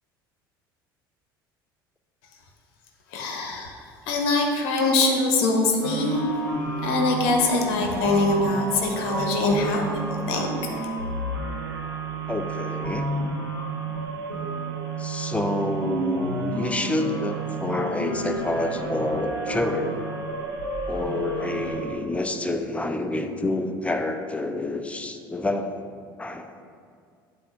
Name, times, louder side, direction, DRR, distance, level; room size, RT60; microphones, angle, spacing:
voice 1, 3.1-3.8 4.1-6.2 6.8-10.5 10.7-10.9, left 2 dB, 60° left, 1 dB, 0.9 m, -23 dB
sound 1, 5.8-21.8, right 3 dB, 85° right, 1.0 m, -31 dB
voice 2, 12.3-13.1 15.0-20.0 20.9-25.7 26.2-26.5, left 2 dB, 10° left, 6 dB, 0.5 m, -28 dB
7.5 x 2.6 x 5.2 m, 2.2 s
figure-of-eight pair, 65°, 12 cm